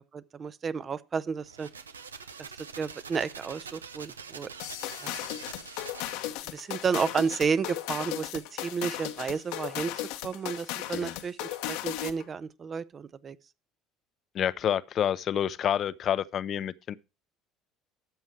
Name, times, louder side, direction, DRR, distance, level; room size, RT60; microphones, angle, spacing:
voice 1, 0.0-1.7 2.8-4.5 5.0-5.2 6.5-9.9 10.2-13.4, right 5 dB, 35° right, 0.7 m, -32 dB
sound 1, 1.4-6.4, right 5 dB, 90° right, 0.7 m, -45 dB
sound 2, 4.6-12.3, left 14 dB, 70° left, 1.0 m, -36 dB
voice 2, 14.3-16.9, left 10 dB, 50° left, 0.6 m, -28 dB
12.5 x 7.5 x 4.5 m
hypercardioid pair, 60°, 0 cm